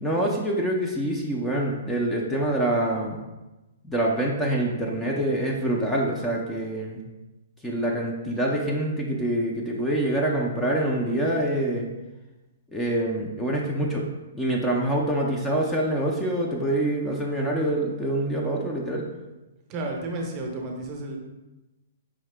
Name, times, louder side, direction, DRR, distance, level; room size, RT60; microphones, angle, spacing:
voice 1, 0.0-3.2 3.9-7.0 7.6-11.9 12.7-14.1 14.3-19.0, right 1 dB, 10° left, -2 dB, 0.5 m, -25 dB
voice 2, 19.7-21.2, right 2 dB, 35° right, 1 dB, 0.8 m, -32 dB
4.9 x 2.7 x 3.3 m, 1.1 s
hypercardioid pair, 130°, 0 cm